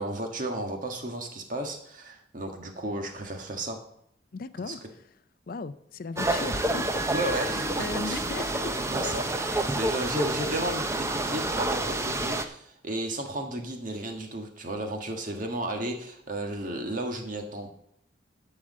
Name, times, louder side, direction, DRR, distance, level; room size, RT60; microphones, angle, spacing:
voice 1, 0.0-3.8 4.6-4.7 7.1-7.8 8.0-8.3 8.6-17.7, right 1 dB, 45° right, 1.5 m, -33 dB
voice 2, 4.3-4.8 5.5-7.3 7.8-8.7 9.0-9.2 9.5-9.8, left 4 dB, 50° left, 0.4 m, -37 dB
sound 1, 6.2-12.4, right 2 dB, 15° right, 0.6 m, -29 dB
11.5 x 4.9 x 7.3 m
head